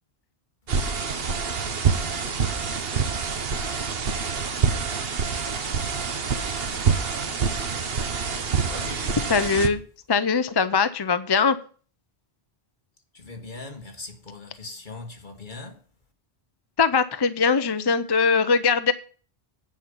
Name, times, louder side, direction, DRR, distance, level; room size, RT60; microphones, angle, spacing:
sound 1, 0.7-9.7, right 6 dB, 70° right, 1.3 m, -26 dB
voice 1, 8.6-9.2 13.1-15.8, left 3 dB, 50° left, 2.0 m, -40 dB
voice 2, 9.3-9.8 10.1-11.6 16.8-18.9, left 5 dB, 30° left, 0.5 m, -21 dB
9.3 x 5.5 x 8.1 m
omnidirectional pair, 1.1 m